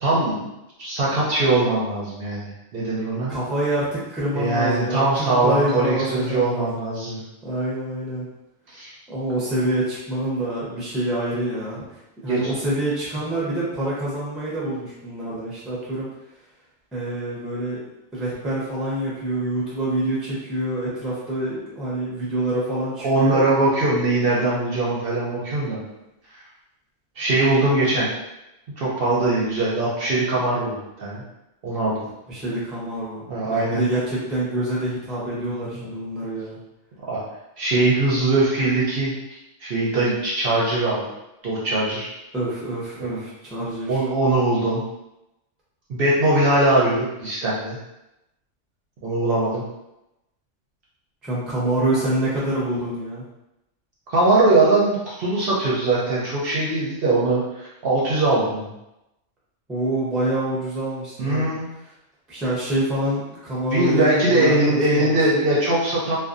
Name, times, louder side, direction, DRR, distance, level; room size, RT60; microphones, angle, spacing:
voice 1, 0.0-0.4 0.8-3.3 4.3-7.2 8.7-8.9 12.3-12.4 23.0-25.8 26.3-26.4 27.2-28.1 28.8-31.2 31.6-32.0 33.3-33.8 35.5-35.6 37.1-37.2 37.6-39.1 39.6-41.0 41.4-42.1 43.0-43.2 43.9-44.8 45.9-47.8 49.0-49.6 54.1-58.7 61.2-61.7 63.7-66.2, right 2 dB, 60° right, -6 dB, 0.7 m, -21 dB
voice 2, 3.3-6.7 7.4-8.3 9.1-16.1 16.9-17.8 18.1-23.4 32.3-36.6 42.3-44.0 51.2-53.3 59.7-61.5 62.3-65.5, right 1 dB, ahead, -7 dB, 0.4 m, -26 dB
2.5 x 2.2 x 2.5 m, 0.92 s
omnidirectional pair, 1.3 m